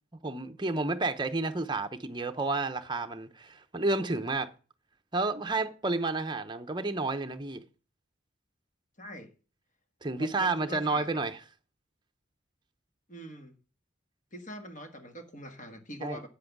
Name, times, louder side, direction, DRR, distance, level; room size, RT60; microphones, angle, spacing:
voice 1, 0.2-4.5 5.1-7.6 10.0-11.4 16.0-16.2, right 3 dB, 25° right, 0.7 m, -31 dB
voice 2, 9.0-9.3 10.1-11.1 13.1-13.5 14.3-16.3, equal, 40° left, 1.5 m, -43 dB
8.7 x 7.7 x 6.0 m
head